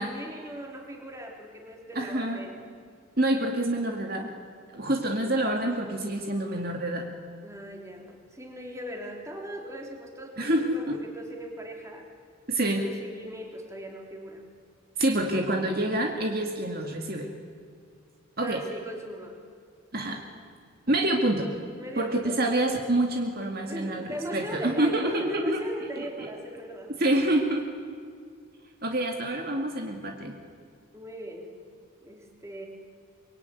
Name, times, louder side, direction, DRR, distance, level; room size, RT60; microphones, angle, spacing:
voice 1, 0.0-2.6 7.4-12.1 12.8-14.5 18.4-19.4 21.8-22.4 23.6-27.0 30.9-31.6 32.0-32.7, equal, 15° right, 1 dB, 3.5 m, -39 dB
voice 2, 1.9-2.4 3.2-4.3 4.7-7.1 10.4-10.9 12.5-12.9 15.0-17.3 18.4-18.6 19.9-20.2 20.9-21.5 22.0-25.6 26.0-26.3 27.0-27.6 28.8-30.4, right 1 dB, 45° right, 2 dB, 2.2 m, -27 dB
25.0 x 23.0 x 9.5 m, 2.2 s
head